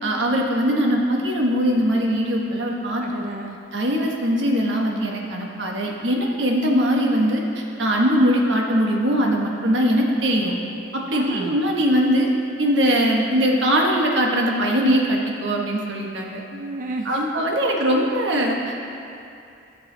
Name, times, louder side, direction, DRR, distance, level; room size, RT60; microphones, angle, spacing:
voice 1, 0.0-3.0 3.7-10.6 10.9-12.3 12.6-16.4 17.0-18.9, equal, 90° right, -1 dB, 1.3 m, -21 dB
voice 2, 3.0-3.6 11.1-11.6 16.5-17.2, right 2 dB, 45° right, 2 dB, 0.5 m, -31 dB
13.5 x 6.8 x 3.9 m, 2.6 s
head